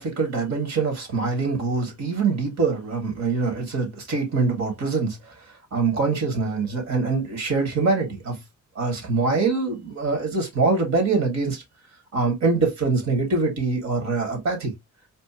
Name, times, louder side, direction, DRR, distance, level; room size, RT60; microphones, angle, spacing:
voice 1, 0.0-5.3 5.7-8.4 8.8-11.6 12.1-14.7, right 4 dB, 65° right, 2.7 m, -24 dB
4.3 x 2.7 x 3.0 m
cardioid pair, 90°, 30 cm